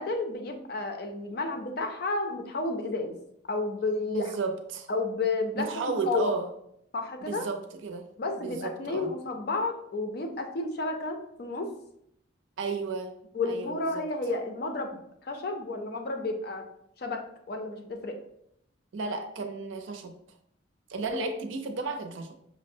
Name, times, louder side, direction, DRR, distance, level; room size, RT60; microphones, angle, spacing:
voice 1, 0.0-3.2 3.5-4.3 4.9-6.3 6.9-7.5 8.2-11.7 13.3-16.7 17.0-18.2 21.1-21.3, left 3 dB, 55° left, 5 dB, 0.5 m, -31 dB
voice 2, 4.1-4.9 5.5-6.5 7.2-8.1 8.4-9.1 12.6-13.2 13.5-14.1 18.9-20.1 20.9-22.4, right 4 dB, 80° right, 6 dB, 0.5 m, -33 dB
5.6 x 2.0 x 2.6 m, 0.74 s
head